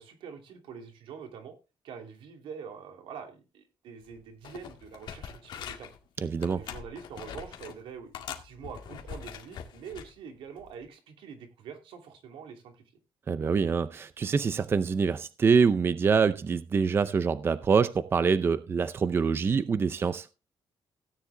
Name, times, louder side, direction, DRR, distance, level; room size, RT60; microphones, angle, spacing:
voice 1, 0.0-1.5 1.8-5.9 6.5-12.8, right 6 dB, 90° right, 2.8 m, -45 dB
sound 1, 4.0-4.2 4.4-6.0 6.4-7.8 8.1-10.1 10.6-10.8, left 8 dB, 60° left, 1.9 m, -43 dB
voice 2, 6.2-6.6 13.3-20.3, right 5 dB, 25° right, 0.6 m, -25 dB
17.0 x 9.8 x 2.2 m
cardioid pair, 165°, 9 cm